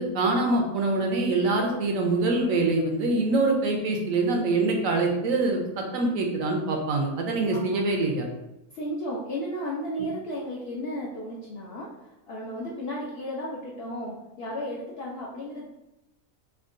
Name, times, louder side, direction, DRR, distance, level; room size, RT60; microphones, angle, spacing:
voice 1, 0.0-8.3, right 2 dB, 70° right, 2 dB, 0.9 m, -24 dB
voice 2, 8.7-15.7, equal, 65° left, -4 dB, 0.6 m, -34 dB
3.6 x 2.2 x 2.4 m, 0.94 s
omnidirectional pair, 1.5 m